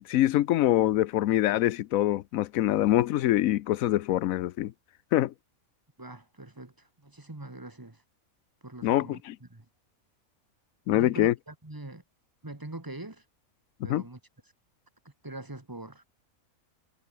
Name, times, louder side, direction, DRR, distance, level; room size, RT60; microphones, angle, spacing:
voice 1, 0.0-4.7 5.1-5.3 8.8-9.4 10.9-11.3 13.9-14.0, left 14 dB, 75° left, 1.0 m, -24 dB
voice 2, 6.0-8.0 8.6-9.7 10.9-12.0 12.4-13.2 13.8-14.2 15.2-16.0, right 2 dB, 15° right, 1.6 m, -43 dB
omnidirectional pair, 1.5 m